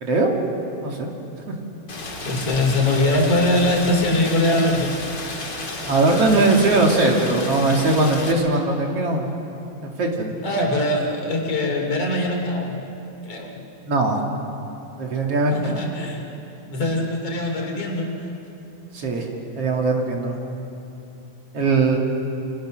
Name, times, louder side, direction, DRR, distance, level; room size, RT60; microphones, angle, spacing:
Rain, 1.9-8.3, left 2 dB, 40° left, 2.9 m, -32 dB
voice 1, 2.3-4.9 10.4-12.8 13.3-13.6 15.5-16.2 16.7-18.1, left 1 dB, 55° left, 1 dB, 3.9 m, -22 dB
voice 2, 5.9-9.2 9.8-10.4 13.9-14.2 15.0-15.8 18.9-19.3 19.6-20.4 21.5-22.0, right 2 dB, 55° right, 1 dB, 3.2 m, -20 dB
29.0 x 25.0 x 6.4 m, 2.9 s
omnidirectional pair, 3.3 m